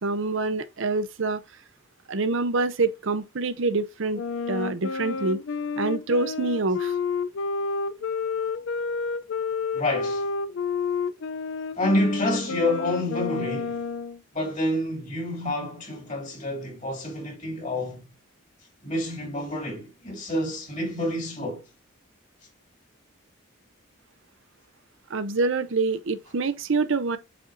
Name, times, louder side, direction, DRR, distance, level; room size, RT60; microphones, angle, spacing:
voice 1, 0.0-1.4 2.1-4.2 4.5-5.4 5.8-6.9 25.1-27.2, right 3 dB, 60° right, 0.6 m, -26 dB
Wind instrument woodwind instrument, 4.1-14.2, left 5 dB, 60° left, 0.4 m, -30 dB
voice 2, 9.7-10.3 11.8-13.8 14.3-18.0 18.8-21.6, left 1 dB, 35° left, 2.7 m, -28 dB
8.5 x 4.3 x 2.6 m
head